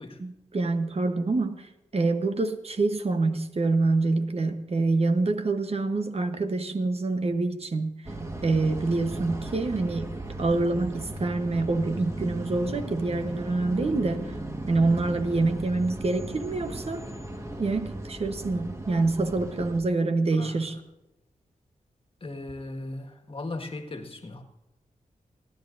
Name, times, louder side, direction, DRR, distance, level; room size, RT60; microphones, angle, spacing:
voice 1, 0.2-7.9 8.4-10.1 10.4-14.3 14.7-17.0 17.6-20.8, right 3 dB, 45° right, 7 dB, 1.0 m, -26 dB
sound 1, 8.1-19.8, right 1 dB, 20° right, 1.5 m, -37 dB
voice 2, 20.3-20.6 22.2-24.4, left 2 dB, 40° left, 4 dB, 1.7 m, -37 dB
29.5 x 10.5 x 2.6 m, 0.95 s
wide cardioid pair, 85°, 14 cm